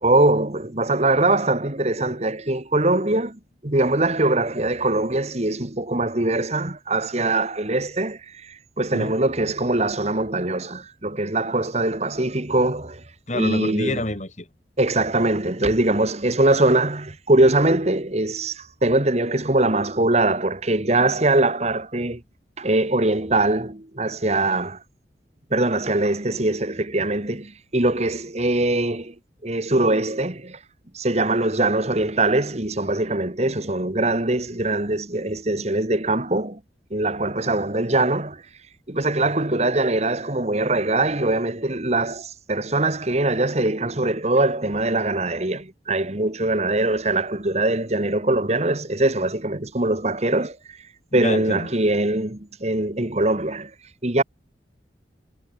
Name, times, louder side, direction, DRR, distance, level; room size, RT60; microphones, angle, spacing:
voice 1, 0.0-13.0 13.3-14.0 14.8-22.2 22.6-24.8 25.5-29.2 29.4-30.6 30.9-36.6 36.9-38.4 38.9-50.8 51.1-53.7 54.0-54.2, right 2 dB, 35° right, 1.9 m, -22 dB
voice 2, 13.3-14.5 51.1-51.7, left 1 dB, 40° left, 3.1 m, -27 dB
head